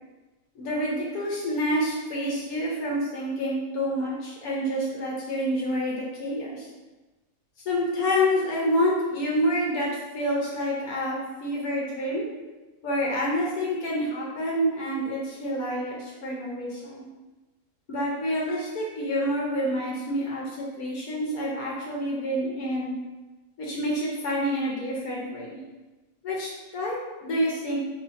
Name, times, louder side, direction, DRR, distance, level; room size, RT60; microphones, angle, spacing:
voice 1, 0.6-6.7 7.6-12.3 12.8-17.0 17.9-22.9 23.6-25.6 26.2-27.8, equal, 80° left, -4 dB, 1.2 m, -28 dB
2.7 x 2.7 x 3.9 m, 1.2 s
omnidirectional pair, 1.5 m